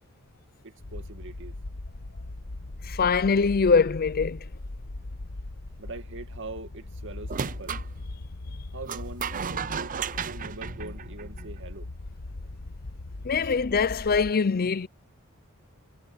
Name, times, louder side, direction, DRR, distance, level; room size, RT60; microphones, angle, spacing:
voice 1, 0.6-1.6 5.8-7.8 8.7-10.0 10.2-11.9 13.4-13.5, right 2 dB, 60° right, 2.4 m, -42 dB
sound 1, 0.8-14.3, left 2 dB, 75° left, 1.2 m, -39 dB
voice 2, 2.8-4.4 13.2-14.9, left 5 dB, 45° left, 0.5 m, -23 dB
sound 2, 7.3-7.9 8.9-11.6, right 7 dB, 40° right, 0.5 m, -34 dB
head